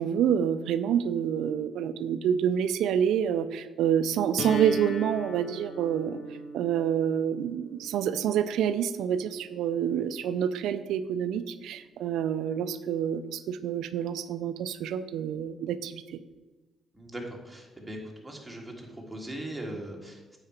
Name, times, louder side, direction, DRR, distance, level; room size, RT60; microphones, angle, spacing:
voice 1, 0.0-6.2 6.5-16.2, right 9 dB, 85° right, 12 dB, 0.4 m, -28 dB
sound 1, 4.4-10.3, right 1 dB, 55° left, 0.9 m, -39 dB
voice 2, 16.9-18.0 18.2-20.4, right 1 dB, 5° right, -1 dB, 1.7 m, -39 dB
8.6 x 4.9 x 4.4 m, 1.2 s
cardioid pair, 90°, 0 cm